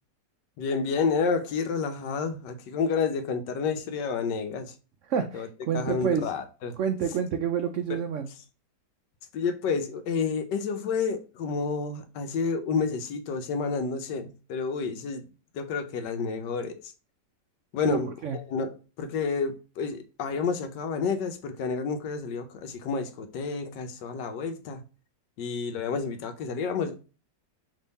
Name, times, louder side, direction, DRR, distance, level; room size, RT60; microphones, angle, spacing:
voice 1, 0.6-4.8 5.3-5.5 5.7-6.8 7.9-8.0 9.3-15.2 15.5-16.9 17.7-24.8 25.4-27.0, left 5 dB, 80° left, 1.3 m, -30 dB
voice 2, 5.1-6.3 6.8-8.3 17.9-18.4, right 7 dB, 80° right, 0.6 m, -28 dB
3.7 x 3.3 x 4.0 m
omnidirectional pair, 1.8 m